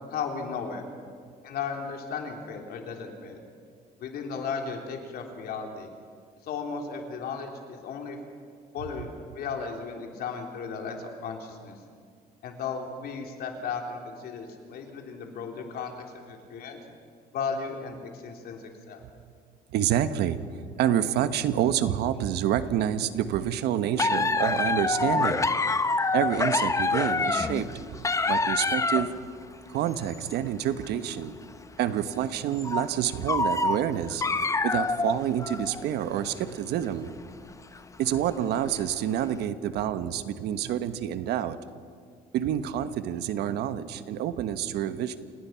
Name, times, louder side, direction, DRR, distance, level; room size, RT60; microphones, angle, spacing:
voice 1, 0.1-0.8 1.4-3.4 4.0-5.9 6.4-8.2 8.7-11.8 12.4-16.8 17.3-19.0, left 5 dB, 65° left, 2 dB, 3.4 m, -35 dB
voice 2, 19.7-25.6 26.1-29.1 29.7-31.3 31.8-34.3 34.6-37.1 38.0-41.6 42.3-45.2, right 10 dB, 80° right, 11 dB, 1.2 m, -28 dB
sound 1, 24.0-29.2 29.9-30.3 30.8-30.9 31.5-31.6 32.6-32.9 33.2-36.0 36.4-36.5 37.5-37.8 38.6-38.8 39.2-39.3, left 3 dB, 20° left, 0.8 m, -26 dB
28.5 x 18.0 x 5.8 m, 2.1 s
cardioid pair, 110°, 17 cm